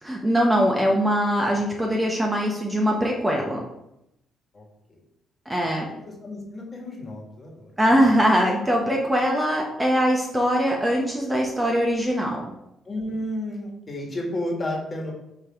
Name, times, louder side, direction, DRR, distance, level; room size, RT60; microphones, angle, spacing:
voice 1, 0.0-3.6 5.5-5.9 7.8-12.5, equal, 15° right, 0 dB, 0.9 m, -22 dB
voice 2, 6.2-7.6 12.9-15.1, left 1 dB, 30° left, -1 dB, 1.8 m, -31 dB
5.9 x 3.2 x 4.9 m, 0.85 s
cardioid pair, 90°, 0 cm